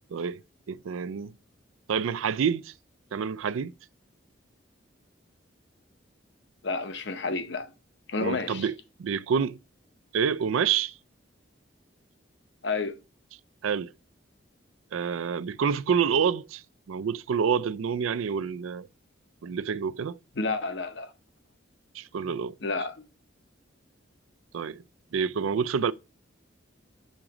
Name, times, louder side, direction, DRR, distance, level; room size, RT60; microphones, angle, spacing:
voice 1, 0.7-1.4 1.9-2.7 3.1-3.7 8.2-9.6 10.1-10.9 13.6-13.9 14.9-18.9 19.4-20.2 21.9-22.5 24.5-24.8 25.1-25.9, right 6 dB, 90° right, 0.4 m, -28 dB
voice 2, 6.6-7.7 8.1-8.6 12.6-13.0 20.4-21.1 22.6-23.1, left 3 dB, 65° left, 0.8 m, -30 dB
6.4 x 3.8 x 5.9 m
head